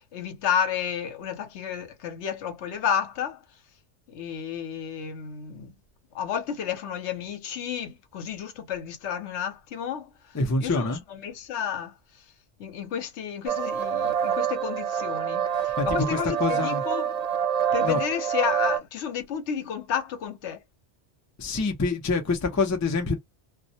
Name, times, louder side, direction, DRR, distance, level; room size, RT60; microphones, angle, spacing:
voice 1, 0.1-3.4 4.1-5.7 6.1-10.1 10.6-10.9 11.2-11.9 12.6-17.1 17.7-20.6, left 8 dB, 75° left, 0.9 m, -31 dB
voice 2, 10.3-11.0 15.5-16.8 17.7-18.0 21.4-23.2, left 3 dB, 25° left, 0.4 m, -26 dB
sound 1, 13.5-18.8, right 8 dB, 65° right, 0.4 m, -26 dB
2.2 x 2.1 x 2.7 m
omnidirectional pair, 1.2 m